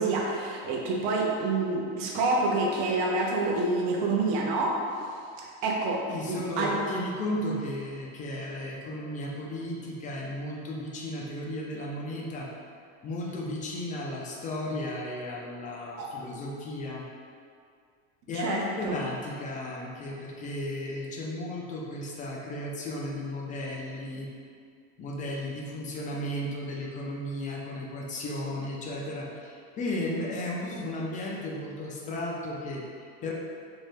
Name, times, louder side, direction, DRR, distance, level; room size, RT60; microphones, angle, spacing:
voice 1, 0.0-4.8 5.6-6.7 16.0-16.1 18.3-18.9, right 3 dB, 55° right, -2 dB, 0.6 m, -27 dB
voice 2, 6.1-12.5 13.0-17.1 18.3-24.3 25.0-33.3, left 1 dB, 25° left, -2 dB, 0.3 m, -34 dB
2.7 x 2.2 x 3.2 m, 2.3 s
supercardioid pair, 125°, 33 cm